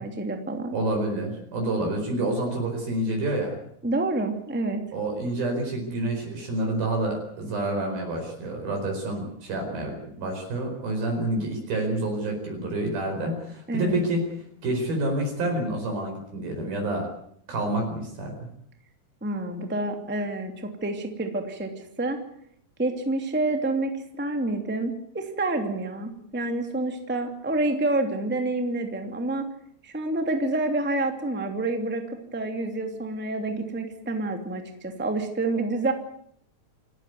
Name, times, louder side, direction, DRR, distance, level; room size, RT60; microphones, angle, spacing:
voice 1, 0.0-0.8 3.8-4.8 13.7-14.0 19.2-22.2 22.8-29.4 29.8-35.9, right 2 dB, 5° right, 4 dB, 2.0 m, -28 dB
voice 2, 0.7-3.6 4.9-14.2 14.6-17.1 17.5-18.5, right 1 dB, 65° right, 2 dB, 6.4 m, -28 dB
28.0 x 14.0 x 9.6 m, 0.69 s
omnidirectional pair, 4.6 m